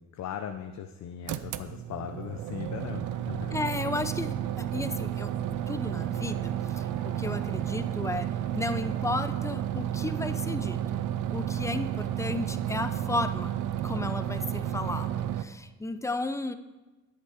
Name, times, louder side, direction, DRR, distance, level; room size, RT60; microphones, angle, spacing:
voice 1, 0.0-3.6, left 9 dB, 65° left, 7 dB, 0.7 m, -39 dB
sound 1, 1.3-15.4, right 11 dB, 80° right, 0.6 m, -32 dB
voice 2, 3.5-5.3 5.7-11.0 11.3-13.5 13.8-16.5, left 2 dB, 10° left, 10 dB, 0.6 m, -34 dB
sound 2, 5.0-10.5, right 3 dB, 60° right, 1.8 m, -53 dB
10.5 x 8.3 x 4.9 m, 1.2 s
cardioid pair, 90°, 30 cm